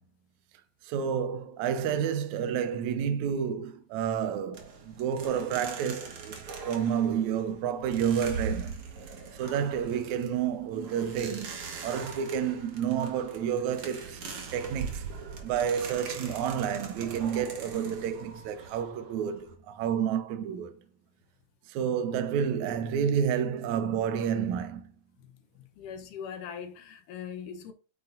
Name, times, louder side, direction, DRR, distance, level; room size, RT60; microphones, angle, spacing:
voice 1, 0.8-8.8 9.3-14.2 14.5-15.1 15.4-20.7 21.7-24.9, right 8 dB, 85° right, 1.6 m, -30 dB
sound 1, 4.5-19.5, right 5 dB, 55° right, 1.5 m, -41 dB
voice 2, 25.6-27.7, left 7 dB, 70° left, 2.0 m, -41 dB
9.2 x 7.5 x 2.6 m
omnidirectional pair, 4.7 m